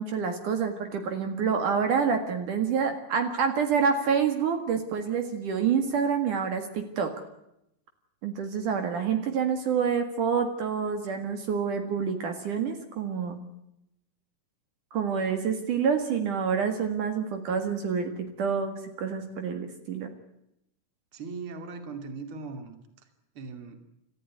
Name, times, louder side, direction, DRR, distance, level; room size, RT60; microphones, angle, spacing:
voice 1, 0.0-7.1 8.2-13.4 14.9-20.1, right 6 dB, 65° right, 6 dB, 3.3 m, -27 dB
voice 2, 21.1-23.1 23.3-23.8, right 4 dB, 40° right, 7 dB, 3.1 m, -39 dB
28.5 x 14.5 x 9.5 m, 0.82 s
omnidirectional pair, 4.0 m